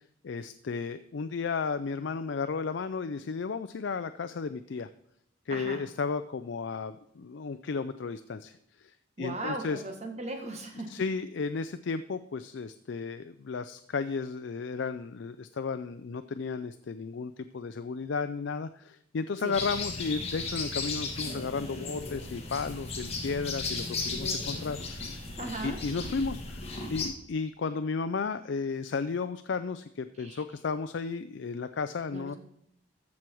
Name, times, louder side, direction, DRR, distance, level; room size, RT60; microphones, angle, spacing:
voice 1, 0.2-4.9 5.5-9.8 10.9-25.2 25.6-32.3, left 4 dB, 65° left, 11 dB, 0.4 m, -34 dB
voice 2, 5.5-5.8 9.2-11.0 19.4-19.5 25.4-25.8 30.2-30.4 32.1-32.4, right 1 dB, 35° right, 4 dB, 1.7 m, -37 dB
sound 1, 19.5-27.1, left 3 dB, 30° left, 1.8 m, -35 dB
14.5 x 6.2 x 4.6 m, 0.73 s
head